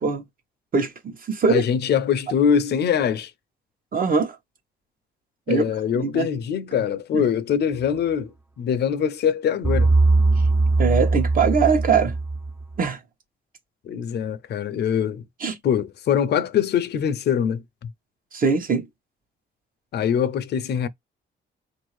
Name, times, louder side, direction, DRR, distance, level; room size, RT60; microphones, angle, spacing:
voice 1, 0.7-1.6 3.9-4.4 5.5-5.6 5.9-6.3 7.1-7.2 10.8-12.1 12.8-13.0 15.4-15.6 18.3-18.9, right 5 dB, 45° right, 1.0 m, -22 dB
voice 2, 1.5-3.3 5.5-9.9 13.8-15.2 15.6-17.9 19.9-20.9, left 8 dB, 55° left, 0.5 m, -23 dB
sound 1, 9.6-12.8, right 3 dB, 10° right, 0.4 m, -20 dB
3.9 x 2.6 x 3.1 m
cardioid pair, 90°, 20 cm